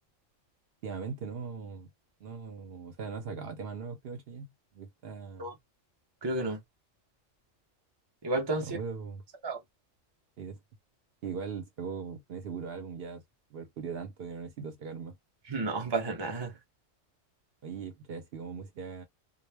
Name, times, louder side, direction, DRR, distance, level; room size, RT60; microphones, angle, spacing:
voice 1, 0.8-1.9 2.2-5.5 8.6-9.2 10.4-10.6 11.2-13.2 13.5-15.1 17.6-19.0, right 5 dB, 60° right, 0.7 m, -40 dB
voice 2, 6.2-6.6 8.2-8.6 9.4-9.6 15.5-16.5, right 2 dB, 40° right, 0.4 m, -31 dB
2.2 x 2.1 x 3.2 m
omnidirectional pair, 1.3 m